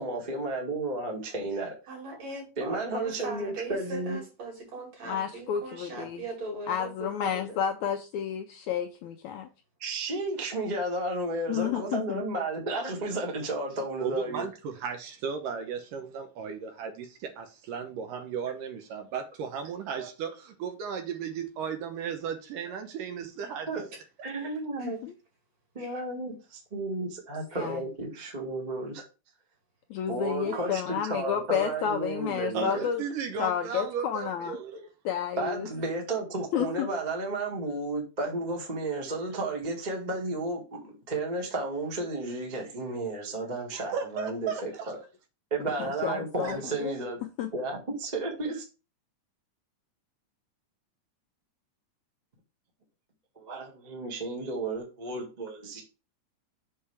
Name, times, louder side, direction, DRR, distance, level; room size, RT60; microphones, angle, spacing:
voice 1, 0.0-1.7 2.6-4.2 9.8-14.5 20.0-20.1 23.7-23.8 24.2-25.0 25.7-29.0 30.1-32.9 35.4-45.0 45.5-47.2 47.5-48.7 53.3-55.8, right 2 dB, 35° right, 0.6 m, -33 dB
voice 2, 1.9-7.6 24.8-24.9 25.8-25.9 27.5-27.7 30.4-30.7, right 2 dB, 50° right, 3.7 m, -39 dB
voice 3, 5.0-6.2 6.7-9.5 11.5-12.2 24.8-25.1 27.6-27.8 29.9-33.0 33.4-34.6 35.0-35.7 36.5-36.9 45.8-46.9 47.4-47.5, left 9 dB, 80° left, 1.7 m, -31 dB
voice 4, 14.0-23.7 32.5-34.9 43.7-44.9 46.4-46.6, right 7 dB, 80° right, 2.6 m, -35 dB
6.7 x 5.5 x 3.4 m
omnidirectional pair, 3.9 m